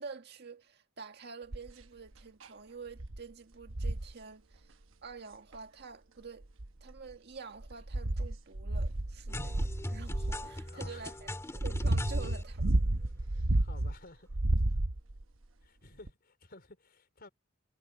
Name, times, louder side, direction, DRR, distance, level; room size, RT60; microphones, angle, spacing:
voice 1, 0.0-4.7 5.0-6.5 6.8-9.6 9.9-12.8, right 4 dB, 55° right, 1.8 m, -47 dB
sound 1, 1.5-1.8 2.4-2.5 3.0-3.2 3.7-4.1 5.5-5.6 6.4-7.1 7.6-10.5 11.2-13.9 14.3-15.2 16.1-16.2, right 1 dB, 75° right, 1.1 m, -31 dB
sound 2, 9.3-12.4, left 1 dB, 15° left, 2.3 m, -40 dB
voice 2, 10.6-11.1 13.5-14.3 15.6-17.3, left 3 dB, 50° left, 4.7 m, -54 dB
head